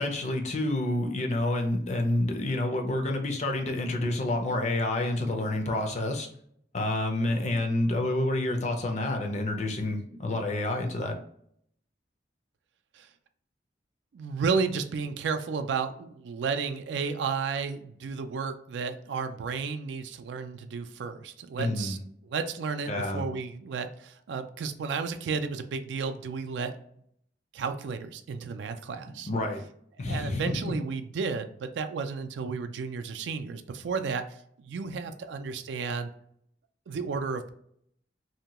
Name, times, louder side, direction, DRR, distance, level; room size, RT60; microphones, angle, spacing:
voice 1, 0.0-6.3 6.7-11.2 21.6-22.0 22.9-23.2 29.3-29.6 30.0-30.6, left 2 dB, 40° left, 3 dB, 0.5 m, -28 dB
voice 2, 14.1-22.0 22.3-26.7 27.5-29.3 30.1-36.1 36.9-37.5, right 5 dB, 75° right, 8 dB, 0.3 m, -32 dB
2.7 x 2.2 x 2.9 m, 0.67 s
head